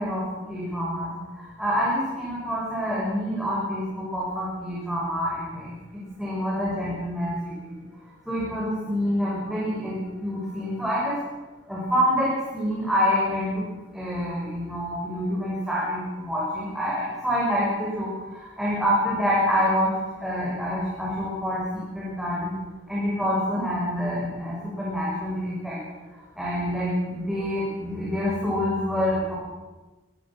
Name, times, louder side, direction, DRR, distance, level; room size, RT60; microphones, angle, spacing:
voice 1, 0.0-5.7 6.2-7.7 8.3-11.2 11.7-13.6 13.9-19.9 20.2-22.5 22.9-25.8 26.4-29.4, equal, ahead, -7 dB, 7.0 m, -27 dB
27.5 x 22.0 x 6.4 m, 1.2 s
head